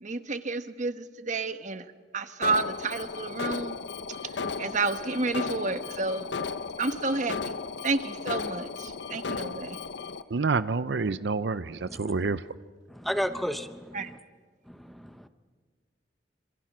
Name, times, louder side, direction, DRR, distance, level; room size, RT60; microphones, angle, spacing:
voice 1, 0.0-1.8 2.1-3.8 4.2-6.3 6.8-7.5 7.8-9.8 13.9-14.1, right 3 dB, 45° right, 10 dB, 1.2 m, -30 dB
Alarm, 2.4-10.2, left 4 dB, 80° left, 0.8 m, -35 dB
voice 2, 10.3-12.4, right 4 dB, 75° right, 14 dB, 0.6 m, -28 dB
voice 3, 11.9-12.4 12.9-14.2 14.6-15.3, equal, ahead, 9 dB, 0.8 m, -34 dB
26.5 x 26.0 x 6.2 m, 1.5 s
head